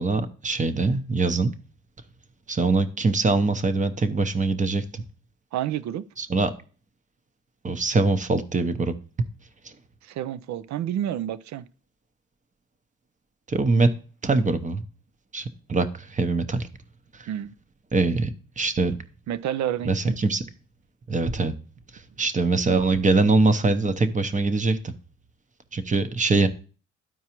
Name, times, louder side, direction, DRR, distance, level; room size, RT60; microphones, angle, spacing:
voice 1, 0.0-1.5 2.5-5.0 6.2-6.5 7.6-8.9 13.5-13.9 14.2-14.8 15.3-16.7 17.9-18.3 18.6-18.9 19.9-20.4 21.1-21.5 22.2-24.9 25.7-26.5, right 3 dB, 25° right, 0.8 m, -23 dB
voice 2, 5.5-6.0 10.0-11.7 17.3-17.5 19.3-20.2, right 11 dB, 65° right, 0.5 m, -29 dB
12.5 x 4.6 x 3.0 m
cardioid pair, 90°, 30 cm